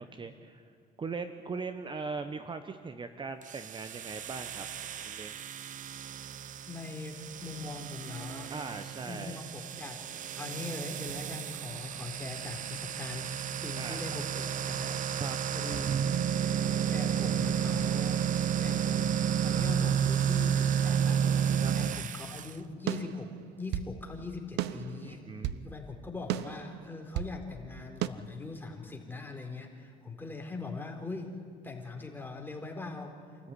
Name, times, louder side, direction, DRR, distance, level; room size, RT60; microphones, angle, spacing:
voice 1, 0.1-0.6 1.0-4.7 5.0-5.4 8.5-9.4 13.8-14.2 15.2-15.4 21.6-21.7 25.0-25.7 33.4-33.5, right 4 dB, 30° right, 9 dB, 1.1 m, -40 dB
sound 1, 3.4-22.5, right 8 dB, 50° right, 0.9 m, -32 dB
voice 2, 6.7-8.5 9.0-10.0 10.3-13.3 13.6-15.0 15.5-16.0 16.9-18.2 18.6-33.4, left 3 dB, 10° left, 2 dB, 4.0 m, -41 dB
sound 2, 22.9-23.9 24.6-25.7 26.3-27.4 28.0-28.1, right 13 dB, 80° right, 0.8 m, -34 dB
27.5 x 14.5 x 9.9 m, 2.4 s
cardioid pair, 110°, 17 cm